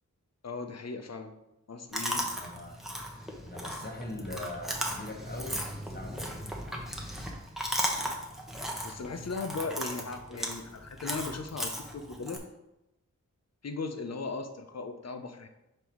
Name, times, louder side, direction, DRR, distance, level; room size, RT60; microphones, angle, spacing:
voice 1, 0.4-1.3 1.7-2.2 8.8-12.4 13.6-15.5, left 4 dB, 55° left, 7 dB, 0.8 m, -37 dB
Chewing mastication, 1.9-12.4, equal, ahead, 1.1 m, -36 dB
voice 2, 2.2-2.8 3.3-6.4, left 1 dB, 30° left, 0 dB, 1.5 m, -42 dB
5.3 x 4.5 x 4.5 m, 0.93 s
wide cardioid pair, 60°, 31 cm